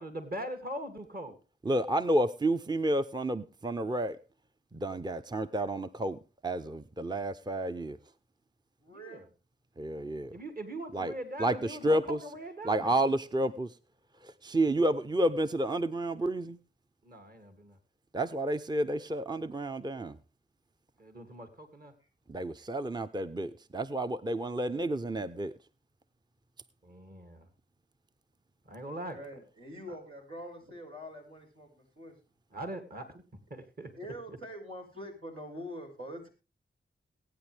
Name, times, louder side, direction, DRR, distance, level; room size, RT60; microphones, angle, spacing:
voice 1, 0.0-1.3 8.9-9.3 10.3-13.0 17.0-17.8 21.0-21.9 26.8-27.5 28.7-29.2 29.9-30.0 32.5-33.2 33.5-33.9 34.3-34.4, right 1 dB, 45° right, 2.5 m, -41 dB
voice 2, 1.7-4.2 4.7-8.0 9.8-10.3 10.9-11.1 11.4-12.2 12.6-13.7 14.4-16.6 18.1-20.2 22.3-25.5, right 1 dB, 20° right, 0.7 m, -30 dB
voice 3, 8.8-9.3 28.8-32.1 34.0-36.3, equal, 85° right, 5.9 m, -44 dB
21.5 x 9.1 x 3.4 m
cardioid pair, 40°, 21 cm